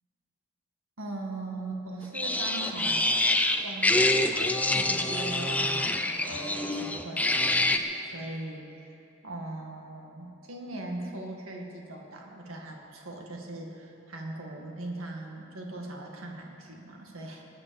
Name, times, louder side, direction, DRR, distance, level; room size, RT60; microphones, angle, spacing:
voice 1, 1.0-3.1 3.6-4.1 4.7-17.4, right 2 dB, 80° right, 1 dB, 2.1 m, -40 dB
sound 1, 2.1-7.8, left 2 dB, 5° left, 0.6 m, -26 dB
19.5 x 8.8 x 7.0 m, 2.8 s
head